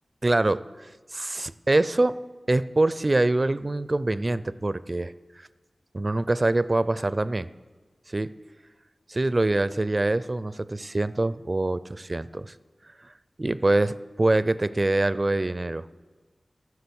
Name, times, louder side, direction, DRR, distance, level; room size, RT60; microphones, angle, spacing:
voice 1, 0.2-2.2 2.5-5.5 5.9-7.5 8.1-8.3 9.1-12.5 13.0-13.1 13.4-15.9, right 2 dB, 35° right, 15 dB, 0.4 m, -25 dB
14.5 x 6.3 x 7.0 m, 1.3 s
wide cardioid pair, 65°, 0 cm